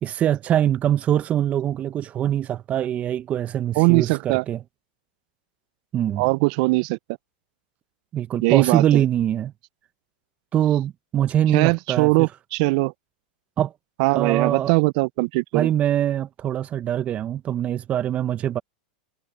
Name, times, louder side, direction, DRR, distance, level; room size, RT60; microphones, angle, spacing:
voice 1, 0.0-4.6 5.9-6.3 8.1-9.5 10.5-12.3 13.6-13.7 14.1-14.7 15.5-18.6, right 11 dB, 35° right, 1.2 m, -23 dB
voice 2, 3.8-4.4 6.2-7.0 8.4-9.0 11.5-12.9 14.0-15.7, right 27 dB, 55° right, 0.5 m, -20 dB
hypercardioid pair, 105°, 4 cm